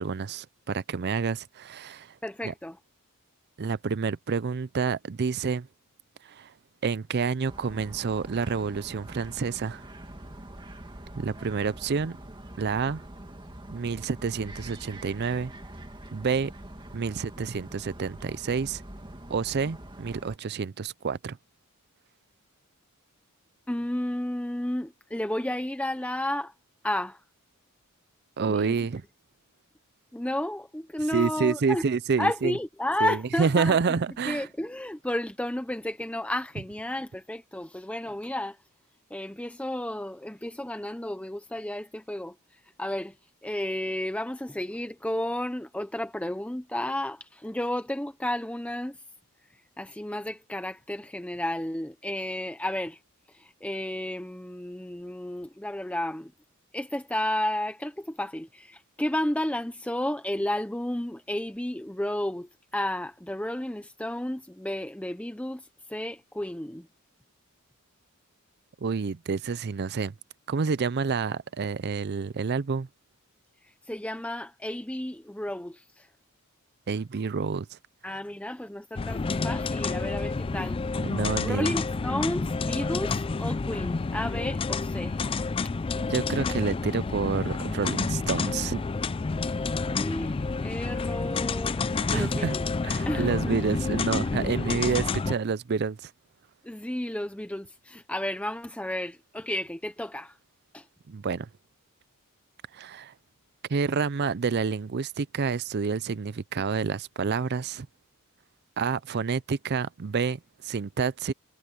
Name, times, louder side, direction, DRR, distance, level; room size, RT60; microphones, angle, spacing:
voice 1, 0.0-2.1 2.4-2.5 3.6-5.7 6.3-6.5 6.8-9.8 11.2-12.2 12.6-13.0 13.7-15.5 16.1-16.5 16.9-18.8 19.3-21.4 28.4-29.0 31.1-32.5 33.0-34.5 68.8-70.1 70.5-72.9 76.9-77.8 81.0-81.7 86.0-88.8 92.1-92.6 92.8-96.1 101.1-101.5 102.7-103.1 103.7-107.9 108.8-111.3, right 5 dB, 45° right, 0.5 m, -28 dB
voice 2, 2.2-2.8 23.7-26.5 26.8-27.2 28.5-28.9 30.1-31.8 32.2-34.0 34.3-38.6 39.1-42.4 42.8-43.2 43.4-49.0 49.8-53.0 53.3-56.3 56.7-65.6 65.9-66.9 73.9-76.1 78.0-80.8 81.4-85.2 89.9-92.6 93.1-93.6 96.6-100.4 100.7-100.9, left 1 dB, 5° left, 0.7 m, -32 dB
sound 1, 7.5-20.4, right 1 dB, 20° right, 2.0 m, -44 dB
sound 2, 79.0-95.4, left 4 dB, 25° left, 0.3 m, -29 dB
head